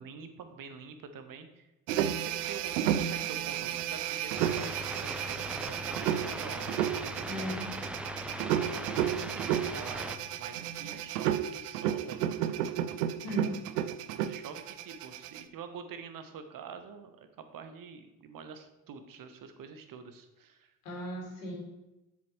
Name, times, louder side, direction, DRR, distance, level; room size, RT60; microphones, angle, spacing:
voice 1, 0.0-1.7 2.2-7.5 8.7-12.3 13.3-13.6 13.9-20.7, right 6 dB, 45° right, 8 dB, 1.1 m, -46 dB
sound 1, 1.9-15.4, right 10 dB, 80° right, 0.5 m, -32 dB
sound 2, 4.3-10.2, right 1 dB, 5° right, 0.4 m, -39 dB
voice 2, 7.2-7.7 13.2-13.5 20.8-21.6, right 1 dB, 80° left, -2 dB, 2.6 m, -37 dB
7.4 x 7.3 x 3.2 m, 0.98 s
hypercardioid pair, 55°, 46 cm